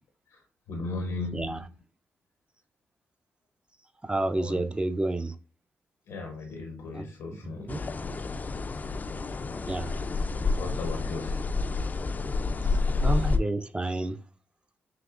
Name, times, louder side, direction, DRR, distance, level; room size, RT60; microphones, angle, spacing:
voice 1, 0.7-1.7 4.4-4.6 6.1-7.9 10.5-11.5, left 3 dB, 80° left, 0.7 m, -37 dB
voice 2, 4.0-5.3 6.9-7.1 7.3-7.4 7.7-7.8 9.7-10.0 13.0-14.2, right 2 dB, 20° right, 0.5 m, -29 dB
sound 1, 7.7-13.4, left 3 dB, 35° left, 0.4 m, -29 dB
5.9 x 2.9 x 2.5 m
cardioid pair, 65°, 5 cm